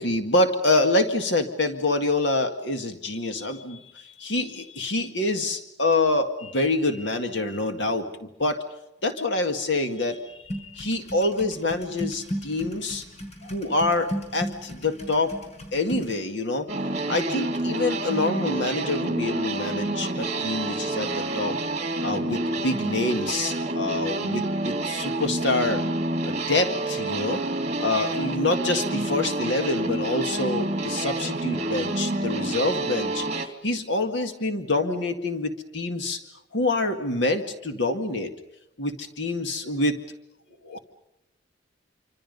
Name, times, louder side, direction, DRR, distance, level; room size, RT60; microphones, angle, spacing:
voice 1, 0.0-8.1 8.4-8.6 9.0-13.0 13.4-15.3 15.7-16.7 17.1-21.6 22.0-25.8 26.2-27.4 27.8-36.2 36.5-38.3 38.8-40.0 40.6-40.8, left 2 dB, 70° left, 6 dB, 2.0 m, -26 dB
sound 1, 10.5-16.1, equal, 35° left, 6.3 m, -35 dB
sound 2, 16.7-33.5, right 2 dB, 40° right, 2.4 m, -28 dB
28.0 x 25.5 x 5.4 m, 0.86 s
head